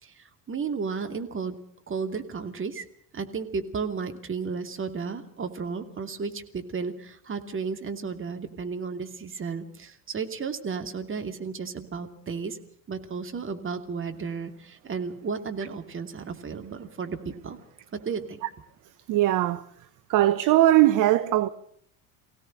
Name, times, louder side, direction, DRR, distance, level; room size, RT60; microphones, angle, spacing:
voice 1, 0.0-1.6 1.9-2.9 3.1-12.6 12.9-17.6 17.9-18.4, right 5 dB, 30° right, 2.6 m, -33 dB
voice 2, 19.1-19.6 20.1-21.5, right 14 dB, 45° right, 0.9 m, -20 dB
24.5 x 17.0 x 6.4 m
figure-of-eight pair, 65°, 43 cm